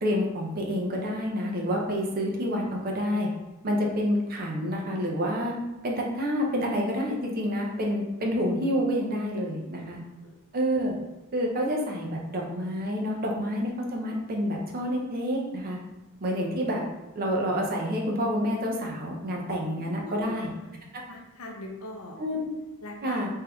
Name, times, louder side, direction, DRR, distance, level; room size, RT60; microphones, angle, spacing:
voice 1, 0.0-3.3 3.6-5.5 5.8-10.0 10.5-10.9 11.3-15.8 16.2-16.8 17.1-20.5 20.9-21.0 22.2-22.5 23.0-23.3, equal, 45° right, -1 dB, 0.5 m, -28 dB
voice 2, 9.5-9.9 10.2-10.3 19.7-20.7 21.1-22.2 22.8-23.2, left 1 dB, 70° left, 1 dB, 0.6 m, -42 dB
2.7 x 2.3 x 3.4 m, 1.0 s
head